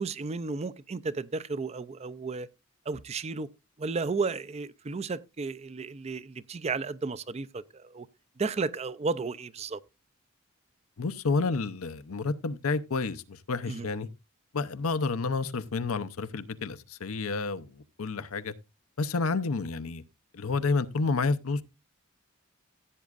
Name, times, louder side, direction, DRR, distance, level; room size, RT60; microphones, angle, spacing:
voice 1, 0.0-2.5 2.9-3.5 3.8-8.1 8.4-9.8 13.7-13.9, right 4 dB, 30° right, 0.4 m, -33 dB
voice 2, 11.0-14.1 14.5-18.5 19.0-20.0 20.3-21.6, left 4 dB, 85° left, 0.7 m, -30 dB
15.5 x 8.3 x 2.5 m
head